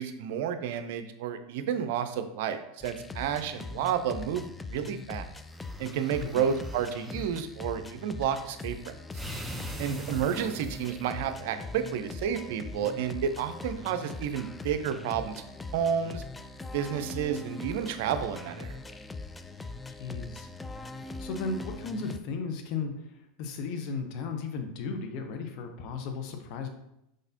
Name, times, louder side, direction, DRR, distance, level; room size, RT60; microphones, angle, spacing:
voice 1, 0.0-4.4 4.7-5.3 5.8-8.9 9.8-15.4 15.7-16.2 16.7-19.0, right 8 dB, 65° right, 9 dB, 0.4 m, -31 dB
sound 1, 2.8-22.2, left 3 dB, 15° left, 0.3 m, -41 dB
sound 2, 5.5-7.3 9.1-11.1, equal, 5° right, 0.7 m, -42 dB
voice 2, 19.9-20.5 21.2-26.7, left 4 dB, 55° left, 5 dB, 0.7 m, -35 dB
5.0 x 3.9 x 2.7 m, 0.82 s
hypercardioid pair, 85°, 0 cm